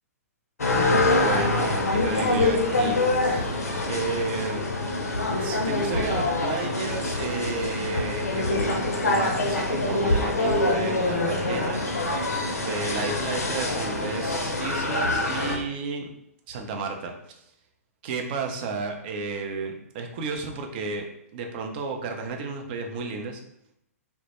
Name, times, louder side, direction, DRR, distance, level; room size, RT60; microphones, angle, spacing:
sound 1, 0.6-15.6, left 2 dB, 80° left, 0.5 m, -25 dB
voice 1, 1.1-3.6 3.9-4.7 5.4-12.2 12.6-16.1 16.5-17.1 18.0-21.0 21.3-23.4, right 4 dB, 40° right, 3 dB, 0.4 m, -32 dB
2.1 x 2.0 x 2.9 m, 0.76 s
figure-of-eight pair, 115°, 8 cm